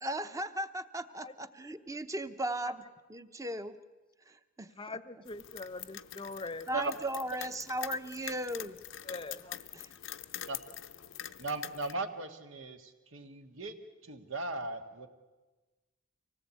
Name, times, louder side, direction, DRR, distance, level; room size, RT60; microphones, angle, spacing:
voice 1, 0.0-3.8 4.3-5.0 6.7-8.8 9.7-9.9, right 1 dB, 15° right, 0.8 m, -37 dB
voice 2, 4.8-6.7 9.1-9.6, left 3 dB, 25° left, 0.8 m, -42 dB
sound 1, 5.3-11.9, left 11 dB, 75° left, 0.7 m, -45 dB
voice 3, 11.4-13.7 14.0-15.1, right 3 dB, 80° right, 1.8 m, -37 dB
25.0 x 18.0 x 8.4 m
head